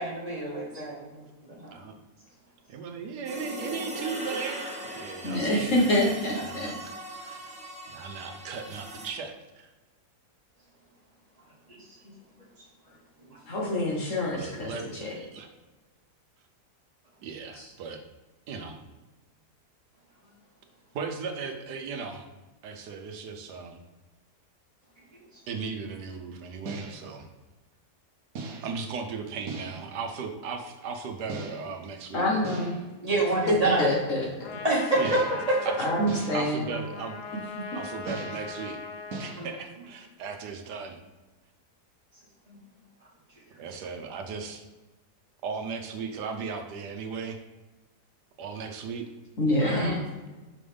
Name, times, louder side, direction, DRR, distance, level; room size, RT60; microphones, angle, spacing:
voice 1, 0.0-1.7 11.7-11.8 12.0-12.1 13.2-13.4 33.0-33.9 34.6-35.2 35.5-35.6 39.4-39.5 42.5-42.6 49.6-50.0, right 2 dB, 25° right, -5 dB, 1.6 m, -28 dB
voice 2, 2.7-5.9 6.4-7.4 7.9-9.7 14.3-15.5 17.2-18.0 18.5-18.8 20.9-22.3 22.6-23.8 25.5-27.3 28.6-32.3 35.0-35.2 35.6-37.2 37.7-38.8 39.2-41.0 43.6-44.6 45.4-47.4 48.4-49.0, right 5 dB, 85° right, 5 dB, 1.4 m, -37 dB
sound 1, 3.2-9.1, equal, 5° right, 0.6 m, -39 dB
voice 3, 5.2-6.7 13.4-15.2 17.6-17.7 32.1-32.8 33.5-34.5 35.8-36.7 37.5-37.6 49.4-50.0, left 1 dB, 50° left, -3 dB, 1.6 m, -26 dB
sound 2, 26.7-27.2 28.4-28.9 29.5-30.0 31.3-31.9 32.4-33.0 35.0-35.6 36.1-36.6 38.1-38.6 39.1-39.5, right 3 dB, 65° right, 1.2 m, -39 dB
Trumpet, 34.4-39.4, left 5 dB, 85° left, 0.5 m, -40 dB
6.1 x 5.4 x 3.4 m, 1.2 s
omnidirectional pair, 1.7 m